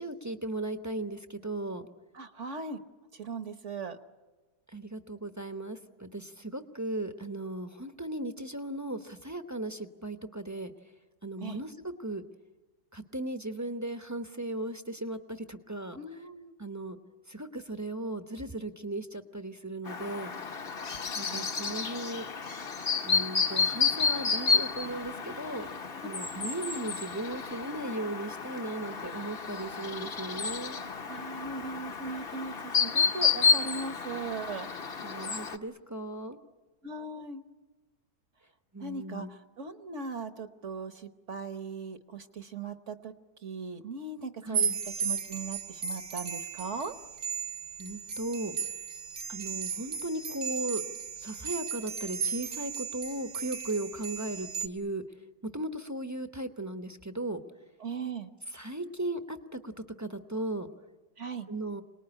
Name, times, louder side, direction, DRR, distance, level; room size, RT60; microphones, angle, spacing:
voice 1, 0.0-1.9 4.7-10.7 11.2-11.7 12.0-12.2 12.9-16.0 16.6-17.0 17.3-20.3 21.2-22.3 23.0-25.7 26.0-30.8 35.0-36.4 38.7-39.3 44.4-44.8 47.8-48.5 49.3-50.8 51.2-55.0 55.4-57.4 58.5-59.7 60.0-60.7 61.5-61.8, right 1 dB, 15° right, 8 dB, 0.7 m, -37 dB
voice 2, 2.1-2.8 3.1-4.0 11.4-11.6 15.9-16.5 21.2-21.5 31.1-34.7 36.8-37.4 38.8-43.1 43.4-46.9 57.8-58.3 61.2-61.5, right 4 dB, 50° right, 9 dB, 1.2 m, -39 dB
Chirp tweet, 19.9-35.6, left 5 dB, 40° left, 1.0 m, -31 dB
sound 1, 44.5-54.7, right 6 dB, 70° right, 1.7 m, -35 dB
27.0 x 19.5 x 9.9 m, 1.2 s
omnidirectional pair, 1.9 m